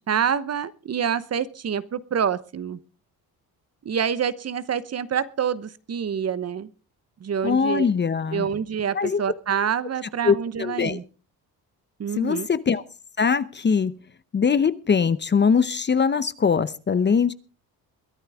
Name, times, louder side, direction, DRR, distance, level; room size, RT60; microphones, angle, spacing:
voice 1, 0.0-2.8 3.8-6.7 7.2-7.9 8.3-11.0 12.0-12.5, right 7 dB, 40° right, 1.0 m, -27 dB
voice 2, 7.4-8.5 8.9-9.2 10.2-11.0 12.2-12.8 13.2-14.0 14.3-17.3, left 6 dB, 30° left, 0.7 m, -22 dB
22.0 x 11.0 x 3.5 m
cardioid pair, 90°, 38 cm